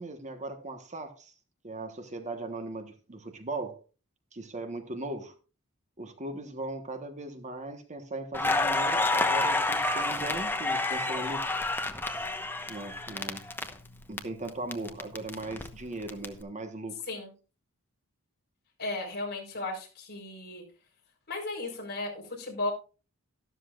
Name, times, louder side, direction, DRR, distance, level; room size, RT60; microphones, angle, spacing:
voice 1, 0.0-1.3 1.6-3.8 4.3-5.3 6.0-11.5 12.7-13.4 14.1-17.1, right 2 dB, 35° right, 1.3 m, -38 dB
Crackle, 8.3-14.2 14.5-16.3, left 2 dB, 10° left, 1.0 m, -29 dB
voice 2, 18.8-20.6 21.3-22.7, left 2 dB, 45° left, 4.5 m, -35 dB
13.0 x 12.5 x 2.4 m
head